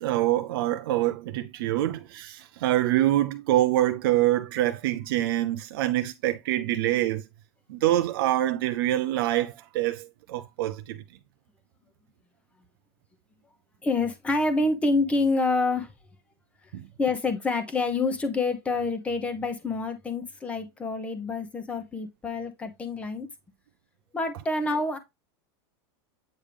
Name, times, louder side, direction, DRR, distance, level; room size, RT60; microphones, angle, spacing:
voice 1, 0.0-7.2 7.7-11.0 16.7-16.9, right 14 dB, 55° right, 0.6 m, -25 dB
voice 2, 13.8-15.9 17.0-23.3 24.1-25.0, left 3 dB, 10° left, 0.9 m, -27 dB
8.5 x 3.6 x 3.4 m
supercardioid pair, 175°, 14 cm